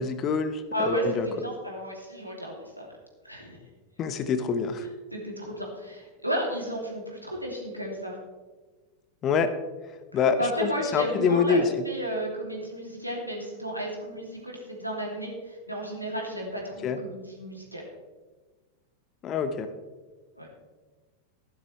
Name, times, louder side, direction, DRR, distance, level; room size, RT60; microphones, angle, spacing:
voice 1, 0.0-1.3 4.0-4.9 9.2-9.5 10.1-11.8 16.8-17.0 19.2-19.7, left 5 dB, 30° left, 11 dB, 1.0 m, -26 dB
voice 2, 0.7-2.9 3.2-3.6 5.1-8.2 10.4-17.8 20.4-20.5, equal, 90° right, -1 dB, 2.8 m, -33 dB
15.0 x 11.5 x 3.3 m, 1.3 s
figure-of-eight pair, 90°, 0 cm